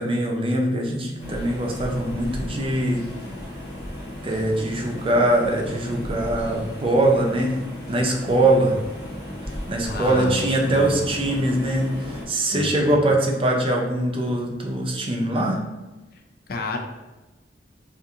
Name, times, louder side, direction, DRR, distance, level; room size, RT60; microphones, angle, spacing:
voice 1, 0.0-3.1 4.2-7.6 7.9-8.8 9.7-15.6, right 1 dB, 30° right, 0 dB, 0.5 m, -22 dB
sound 1, 1.2-12.2, left 1 dB, 30° left, 1.4 m, -35 dB
voice 2, 9.8-11.1 12.5-13.0 16.5-16.8, left 3 dB, 60° left, 3 dB, 0.4 m, -31 dB
3.5 x 2.5 x 2.7 m, 1.1 s
head